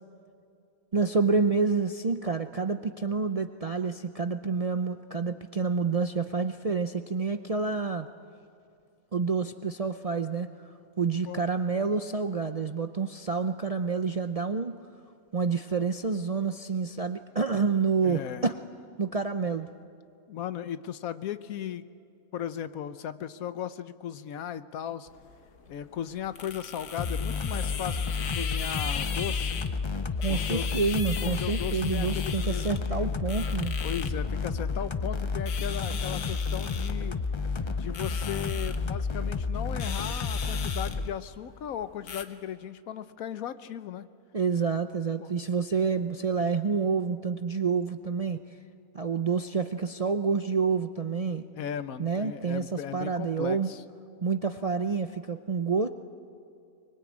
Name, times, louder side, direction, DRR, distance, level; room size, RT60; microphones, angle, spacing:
voice 1, 0.9-8.1 9.1-10.5 11.0-14.8 15.3-18.6 19.0-19.7 30.2-33.8 44.3-48.4 48.9-51.4 52.0-53.7 54.2-55.9, right 5 dB, 60° right, 7 dB, 0.3 m, -28 dB
voice 2, 18.0-18.5 20.3-21.8 22.3-25.1 25.7-29.6 30.3-30.7 31.2-33.2 33.8-37.2 37.8-44.1 45.2-45.3 51.5-53.8, left 9 dB, 70° left, 13 dB, 1.2 m, -37 dB
sound 1, 25.1-42.2, left 7 dB, 85° left, 1.7 m, -39 dB
sound 2, 27.0-41.1, left 4 dB, 45° left, 0.3 m, -31 dB
24.0 x 21.5 x 8.6 m, 2.5 s
omnidirectional pair, 1.6 m